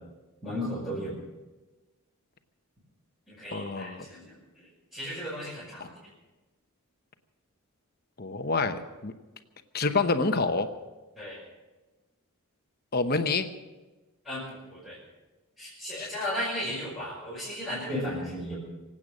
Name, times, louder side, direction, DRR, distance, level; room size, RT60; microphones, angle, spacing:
voice 1, 0.4-1.1 3.3-4.7 4.9-5.9 11.2-11.4 14.2-14.4 14.7-15.0 15.6-18.6, equal, ahead, -10 dB, 5.7 m, -35 dB
voice 2, 3.5-4.0 5.8-5.9 8.2-9.1 9.7-10.7 12.9-13.5 16.0-16.1, left 3 dB, 45° left, 8 dB, 1.0 m, -27 dB
25.0 x 8.8 x 6.4 m, 1.2 s
head